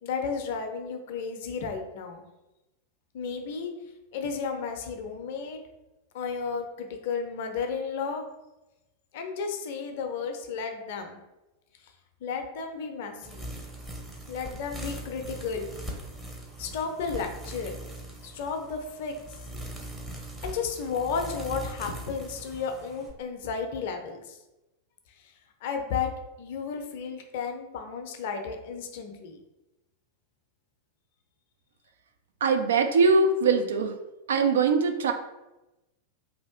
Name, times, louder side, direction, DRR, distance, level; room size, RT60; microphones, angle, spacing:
voice 1, 0.0-2.3 3.1-3.7 4.1-5.6 6.1-8.2 9.1-11.2 12.2-13.4 14.3-15.7 16.6-17.8 18.2-19.1 20.4-24.4 25.6-26.1 26.4-29.4, left 5 dB, 50° left, 5 dB, 0.5 m, -33 dB
sound 1, 13.2-23.1, right 1 dB, 10° right, 0.7 m, -41 dB
voice 2, 32.4-34.0 34.3-35.1, right 4 dB, 65° right, 5 dB, 0.4 m, -22 dB
3.3 x 2.5 x 3.5 m, 0.99 s
figure-of-eight pair, 90°, 0 cm